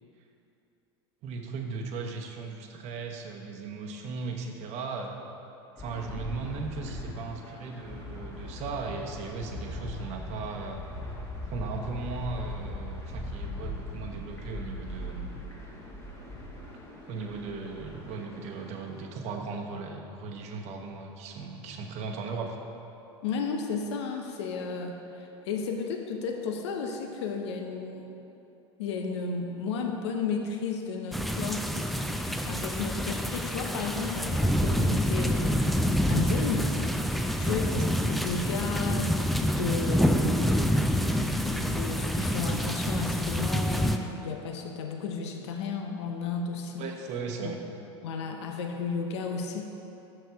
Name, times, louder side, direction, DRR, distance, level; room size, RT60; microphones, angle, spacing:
voice 1, 1.2-5.1 5.8-10.8 11.5-15.4 17.1-22.6 37.4-37.7 46.8-47.6, right 4 dB, 50° right, 2 dB, 0.9 m, -37 dB
sound 1, 5.8-19.0, left 1 dB, 15° left, 1.7 m, -40 dB
voice 2, 23.2-28.1 28.8-31.7 32.2-36.7 37.4-40.7 41.3-46.8 47.4-47.6 48.0-49.6, left 5 dB, 75° left, 3 dB, 0.7 m, -33 dB
sound 2, 31.1-44.0, equal, ahead, 0.4 m, -27 dB
6.5 x 6.5 x 4.6 m, 2.9 s
hypercardioid pair, 90°, 15 cm